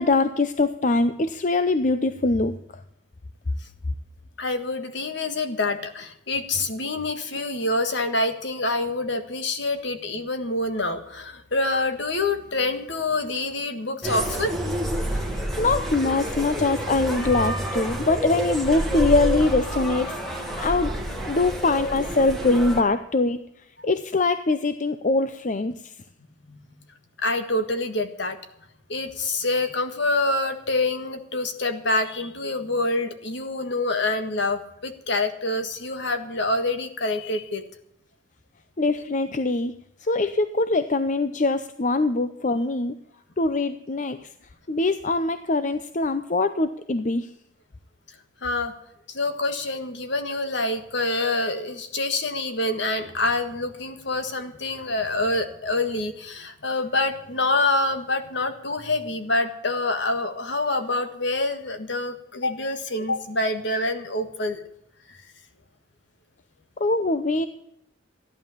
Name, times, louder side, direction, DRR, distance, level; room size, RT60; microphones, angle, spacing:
voice 1, 0.0-2.6 15.1-20.2 20.6-20.9 21.3-23.4 23.8-25.9 38.8-39.7 40.0-42.9 43.4-44.3 44.7-47.3 66.8-67.5, left 3 dB, 40° left, 11 dB, 0.6 m, -23 dB
voice 2, 4.4-14.5 26.5-26.6 27.2-28.4 28.9-37.6 48.4-48.7 49.1-64.6, left 2 dB, 60° left, 8 dB, 1.7 m, -26 dB
sound 1, 14.0-22.8, right 1 dB, ahead, 2.1 m, -29 dB
15.0 x 11.0 x 7.2 m, 0.77 s
head